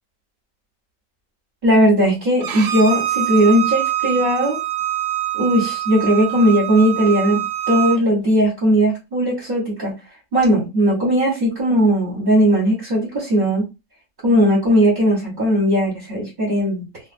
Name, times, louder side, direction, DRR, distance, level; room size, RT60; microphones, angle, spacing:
voice 1, 1.6-4.6 5.3-9.9 10.3-13.7 14.2-16.8, equal, 35° right, -5 dB, 1.1 m, -17 dB
Bowed string instrument, 2.4-8.0, right 13 dB, 70° right, 0.8 m, -24 dB
2.5 x 2.4 x 2.5 m, 0.27 s
omnidirectional pair, 1.5 m